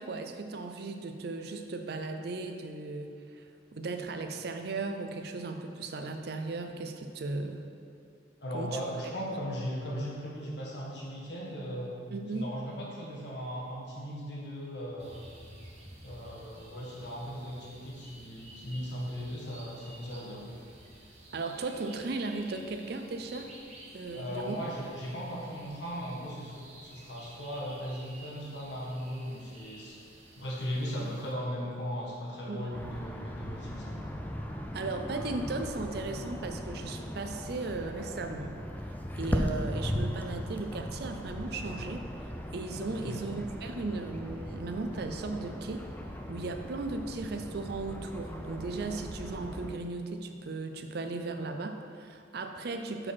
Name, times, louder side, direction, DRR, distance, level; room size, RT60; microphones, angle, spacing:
voice 1, 0.0-7.7 8.5-8.7 12.1-12.5 21.3-23.5 23.9-24.6 32.5-32.8 34.7-42.0 42.5-45.8 46.3-53.1, right 3 dB, 55° right, 5 dB, 0.4 m, -36 dB
voice 2, 8.4-11.9 12.3-15.2 16.0-20.4 24.1-30.0 30.4-34.0 42.9-43.2, equal, 65° left, -4 dB, 1.5 m, -38 dB
sound 1, 15.0-31.3, right 1 dB, 35° right, 1.1 m, -52 dB
sound 2, 32.7-49.7, equal, 10° left, 0.4 m, -38 dB
6.3 x 4.9 x 5.7 m, 2.4 s
head